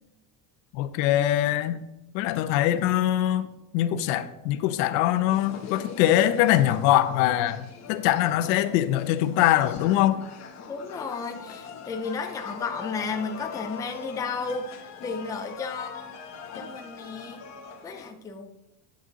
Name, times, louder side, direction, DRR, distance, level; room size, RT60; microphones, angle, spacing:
voice 1, 0.7-1.8 2.1-3.5 3.7-10.2, left 13 dB, 90° left, 0.9 m, -23 dB
sound 1, 5.3-18.1, left 6 dB, 30° left, 1.3 m, -41 dB
voice 2, 10.7-16.1 16.6-17.4 17.8-18.5, left 4 dB, 10° left, 0.4 m, -33 dB
10.0 x 6.3 x 4.0 m
cardioid pair, 155°, 49 cm